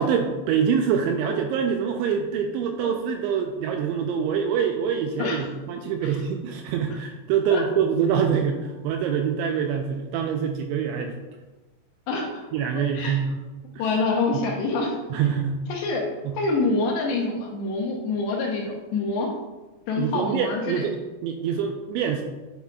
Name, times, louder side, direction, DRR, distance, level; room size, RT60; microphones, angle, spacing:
voice 1, 0.0-11.1 12.5-13.3 13.8-13.9 14.3-14.4 15.1-15.6 16.3-16.4 20.0-21.0 21.2-22.2, right 7 dB, 85° right, 4 dB, 2.6 m, -25 dB
voice 2, 12.1-12.4 12.9-13.2 13.8-15.0 15.7-16.1 16.3-19.3 19.9-20.8, left 3 dB, 75° left, -2 dB, 2.8 m, -26 dB
9.3 x 6.3 x 2.3 m, 1.2 s
omnidirectional pair, 5.6 m